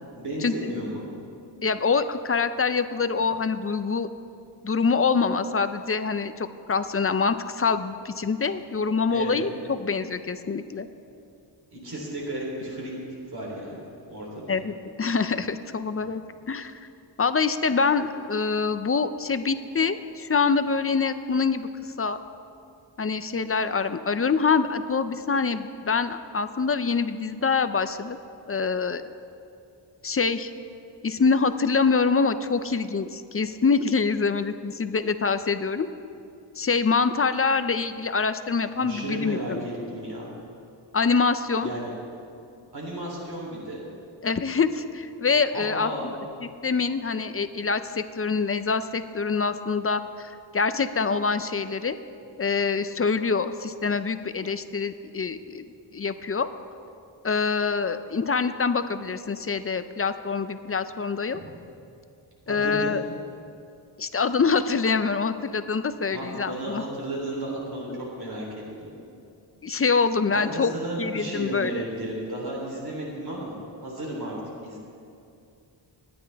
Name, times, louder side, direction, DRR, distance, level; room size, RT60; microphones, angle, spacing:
voice 1, 0.1-1.0 9.1-9.4 11.7-12.9 13.3-13.8 14.1-14.6 38.8-39.5 39.9-40.3 41.6-41.9 42.7-43.8 45.5-46.1 61.3-61.5 62.5-63.0 66.1-67.9 68.2-68.4 68.8-68.9 70.3-74.8, right 1 dB, 55° right, -4 dB, 3.4 m, -33 dB
voice 2, 1.6-4.1 4.6-10.9 14.5-16.2 16.5-16.7 17.2-21.7 22.0-22.2 23.0-28.2 28.5-29.0 30.0-30.5 31.0-35.9 36.6-39.6 40.9-41.7 44.2-52.0 52.4-55.6 55.9-56.5 57.2-61.4 62.5-63.0 64.0-66.8 67.9-68.0 69.6-70.7 71.0-71.8, left 5 dB, 30° left, 11 dB, 0.4 m, -25 dB
26.5 x 10.5 x 3.4 m, 2.5 s
wide cardioid pair, 170°, 45 cm